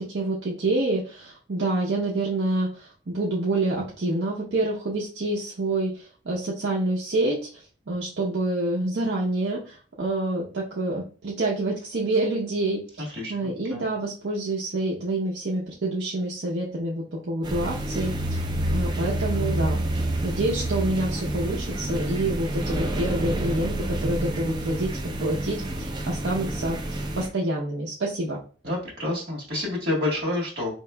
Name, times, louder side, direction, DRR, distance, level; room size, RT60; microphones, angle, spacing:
voice 1, 0.0-18.4 18.7-19.8 20.2-26.8 27.1-28.4, right 2 dB, 80° right, -4 dB, 0.7 m, -27 dB
voice 2, 13.0-13.8 28.6-30.7, left 2 dB, 60° right, -2 dB, 1.7 m, -29 dB
sound 1, 17.4-27.3, right 1 dB, 25° right, 0.4 m, -28 dB
4.5 x 2.9 x 2.2 m, 0.39 s
head